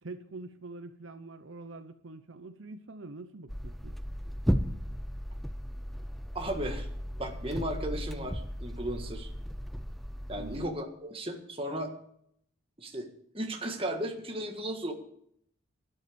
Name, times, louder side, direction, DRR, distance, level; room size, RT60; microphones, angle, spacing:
voice 1, 0.0-3.9 10.4-10.7, right 2 dB, 70° right, 10 dB, 0.8 m, -45 dB
sound 1, 3.5-10.7, equal, ahead, 0.5 m, -35 dB
voice 2, 6.4-6.9 7.2-9.3 10.3-11.9 12.8-13.1 13.3-14.9, right 1 dB, 25° right, 4 dB, 1.7 m, -35 dB
12.0 x 11.0 x 7.0 m, 0.69 s
head